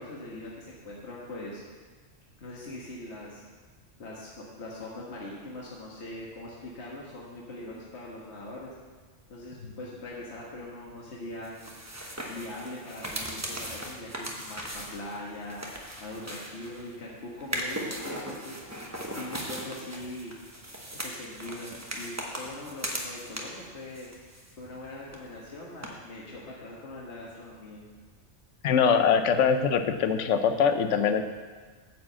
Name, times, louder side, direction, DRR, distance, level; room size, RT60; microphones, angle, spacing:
voice 1, 0.0-1.6 2.4-3.4 4.0-8.7 9.3-11.5 12.3-15.6 16.0-18.6 19.1-20.3 21.0-24.1 24.6-27.8, left 1 dB, 65° left, -5 dB, 1.7 m, -41 dB
sound 1, 11.4-16.9 17.4-23.7 23.9-24.8 25.1-25.2 25.8-25.9, right 1 dB, 15° right, 1.0 m, -38 dB
voice 2, 28.6-31.2, left 6 dB, 90° left, 9 dB, 1.0 m, -23 dB
9.2 x 4.9 x 7.4 m, 1.5 s
omnidirectional pair, 1.2 m